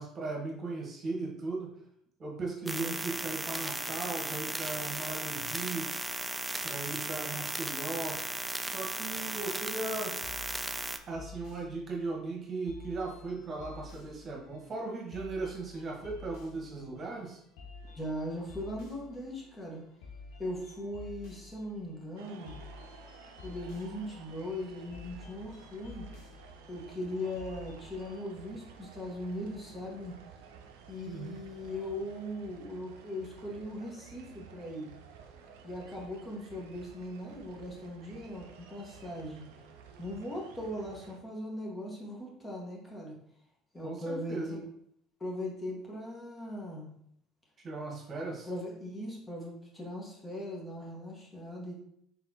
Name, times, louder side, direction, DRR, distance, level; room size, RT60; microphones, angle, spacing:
voice 1, 0.0-1.7 2.2-5.9 6.6-8.2 8.6-10.2 11.1-17.4 31.1-31.4 43.8-44.6 47.6-48.5, right 3 dB, 40° right, -1 dB, 1.2 m, -37 dB
voice 2, 2.6-3.0 17.9-19.8 20.4-22.6 23.4-26.1 26.7-30.1 30.9-34.9 35.6-39.5 40.0-43.1 43.7-44.6 45.2-46.9 48.4-51.9, left 1 dB, 20° left, -3 dB, 1.7 m, -39 dB
sound 1, 2.7-11.0, right 2 dB, 10° right, 0.4 m, -36 dB
sound 2, 10.1-28.2, left 3 dB, 70° left, 1.3 m, -51 dB
sound 3, 22.2-41.2, right 6 dB, 80° right, 0.5 m, -53 dB
4.0 x 4.0 x 2.9 m, 0.71 s
hypercardioid pair, 65°, 0 cm